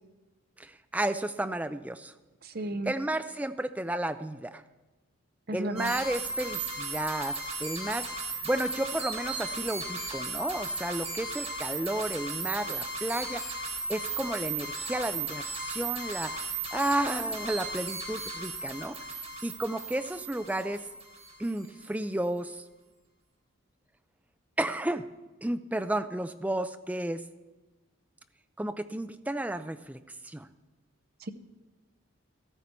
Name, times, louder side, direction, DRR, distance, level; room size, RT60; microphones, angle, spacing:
voice 1, 0.6-2.1 2.9-4.6 5.5-8.1 8.4-13.5 13.9-16.4 16.7-19.0 19.4-20.8 21.4-22.6 24.6-25.1 25.4-27.2 28.6-30.0 30.2-30.5, right 1 dB, 5° right, 10 dB, 0.4 m, -32 dB
voice 2, 2.4-2.9 5.5-5.9 31.2-31.3, right 2 dB, 45° right, 10 dB, 0.7 m, -34 dB
sound 1, 5.8-21.6, right 3 dB, 30° right, 3.4 m, -36 dB
14.5 x 13.5 x 4.3 m, 1.2 s
head